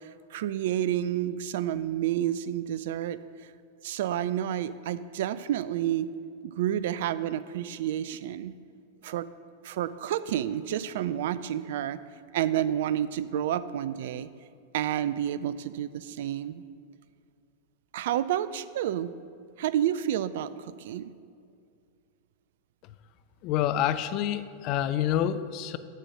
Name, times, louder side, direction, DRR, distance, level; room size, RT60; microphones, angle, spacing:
voice 1, 0.0-3.5 3.8-6.1 6.4-8.5 9.0-9.3 9.6-12.0 12.3-14.3 14.7-16.6 17.9-19.1 19.6-21.0, right 11 dB, 55° right, 14 dB, 0.3 m, -30 dB
voice 2, 23.4-25.8, left 10 dB, 40° left, 12 dB, 0.4 m, -27 dB
7.5 x 6.4 x 6.2 m, 2.3 s
figure-of-eight pair, 90°, 0 cm